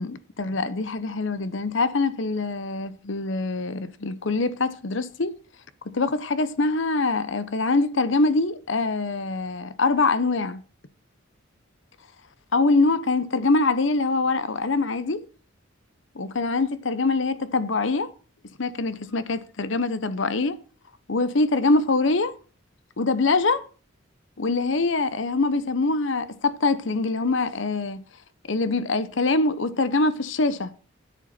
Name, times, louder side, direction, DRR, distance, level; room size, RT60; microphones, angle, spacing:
voice 1, 0.0-5.3 5.9-10.6 12.5-15.2 16.1-18.1 18.6-20.6 21.1-22.3 23.0-23.6 24.4-28.0 28.5-30.7, left 3 dB, 65° left, 0.9 m, -24 dB
12.5 x 10.5 x 4.3 m
head